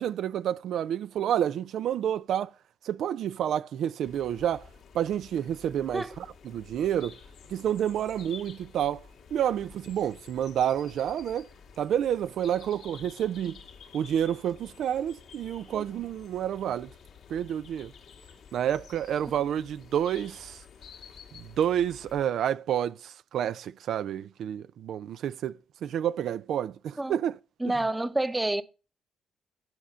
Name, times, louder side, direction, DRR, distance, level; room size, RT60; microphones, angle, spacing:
voice 1, 0.0-2.5 2.8-4.6 4.9-7.2 7.5-9.0 9.3-11.5 11.8-13.6 13.9-16.9 17.3-17.9 18.5-20.6 21.4-27.4, right 10 dB, 70° right, 0.4 m, -29 dB
sound 1, 4.0-22.3, left 6 dB, 75° left, 1.9 m, -51 dB
voice 2, 27.6-28.6, right 2 dB, 15° right, 0.8 m, -28 dB
10.5 x 5.0 x 5.4 m
cardioid pair, 90°, 0 cm